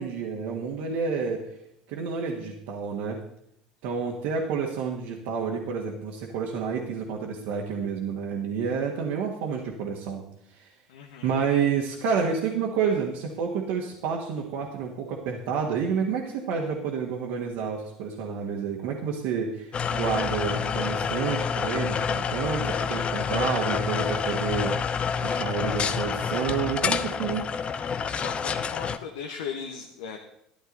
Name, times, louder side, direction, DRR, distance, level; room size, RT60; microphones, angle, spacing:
voice 1, 0.0-1.4 1.9-3.2 3.8-10.2 10.6-10.7 11.2-24.8 25.2-27.4, right 6 dB, 60° right, -2 dB, 1.8 m, -29 dB
voice 2, 10.9-11.3 28.1-30.2, left 7 dB, 70° left, 3 dB, 1.1 m, -37 dB
sound 1, 19.7-29.0, left 6 dB, 35° left, 0.7 m, -28 dB
13.5 x 11.0 x 4.1 m, 0.74 s
figure-of-eight pair, 65°, 3 cm